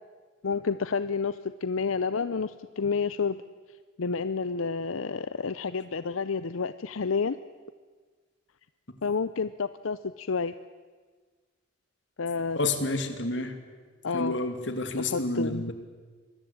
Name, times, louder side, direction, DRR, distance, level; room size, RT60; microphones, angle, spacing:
voice 1, 0.4-3.4 4.0-7.4 9.0-10.5 12.2-12.6 14.0-14.4 14.9-15.7, left 5 dB, 90° left, 14 dB, 0.6 m, -30 dB
voice 2, 12.5-13.5 14.1-15.7, left 2 dB, 60° left, 8 dB, 2.7 m, -29 dB
26.0 x 21.0 x 8.8 m, 1.5 s
head